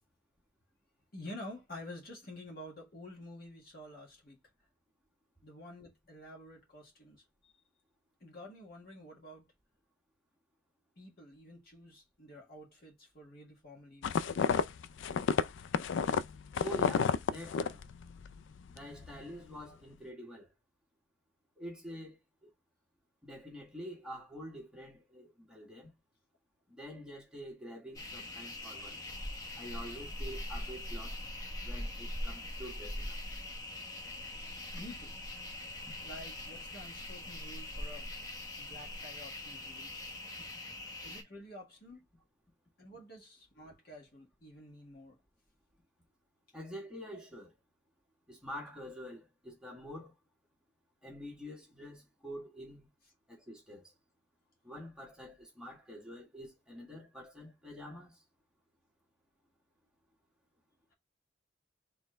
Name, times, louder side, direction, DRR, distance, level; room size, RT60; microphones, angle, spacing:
voice 1, 1.1-4.4 5.4-7.5 8.2-9.5 11.0-14.2 34.7-35.1 36.0-38.1 38.6-39.9 41.0-42.0 42.8-45.2, left 1 dB, 50° left, 1.8 m, -50 dB
sound 1, 14.0-18.4 18.7-19.2, left 6 dB, 75° left, 0.4 m, -31 dB
voice 2, 16.6-17.8 18.7-20.5 21.6-22.2 22.4-22.5 23.2-25.9 26.7-29.0 29.6-31.2 31.6-33.2 46.5-47.5 48.3-50.1 51.0-52.9 53.3-53.9 54.6-58.2, equal, 5° right, 1.3 m, -46 dB
sound 2, 27.9-41.2, left 1 dB, 20° left, 0.9 m, -42 dB
4.3 x 3.4 x 3.2 m
head